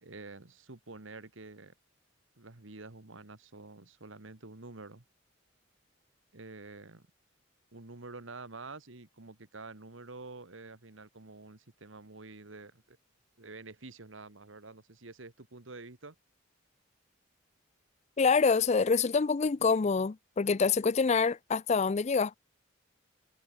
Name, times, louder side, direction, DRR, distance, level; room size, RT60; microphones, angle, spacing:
voice 1, 0.0-1.7 2.4-5.0 6.3-7.1 7.7-13.0 13.4-16.2, right 3 dB, 70° right, 1.8 m, -48 dB
voice 2, 18.2-22.4, left 5 dB, 35° left, 0.4 m, -26 dB
head